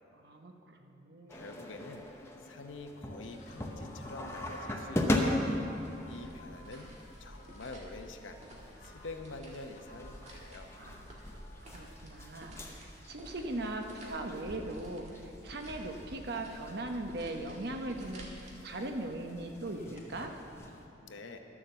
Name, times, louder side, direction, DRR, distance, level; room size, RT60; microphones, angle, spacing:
voice 1, 0.1-1.5 10.7-11.2 11.7-18.3 18.6-20.3, right 2 dB, 55° right, 4 dB, 0.9 m, -39 dB
voice 2, 1.3-2.1 2.4-5.5 6.1-6.9 7.2-8.4 8.8-10.7 21.0-21.4, left 3 dB, 85° left, 5 dB, 0.8 m, -46 dB
sound 1, 1.3-20.9, left 1 dB, 15° left, 0.8 m, -40 dB
sound 2, 3.2-20.6, left 1 dB, 40° left, 1.5 m, -57 dB
sound 3, 6.1-18.6, right 1 dB, 40° right, 1.7 m, -51 dB
11.5 x 7.2 x 6.9 m, 2.9 s
head